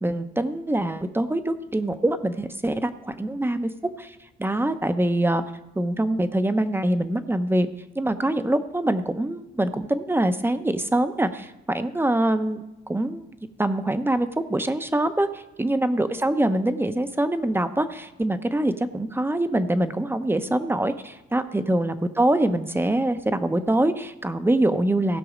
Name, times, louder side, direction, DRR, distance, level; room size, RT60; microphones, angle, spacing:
voice 1, 0.0-3.7 4.0-5.4 5.8-7.7 7.9-25.2, right 1 dB, 10° right, 10 dB, 0.8 m, -24 dB
16.5 x 6.1 x 5.1 m, 0.97 s
cardioid pair, 90°, 20 cm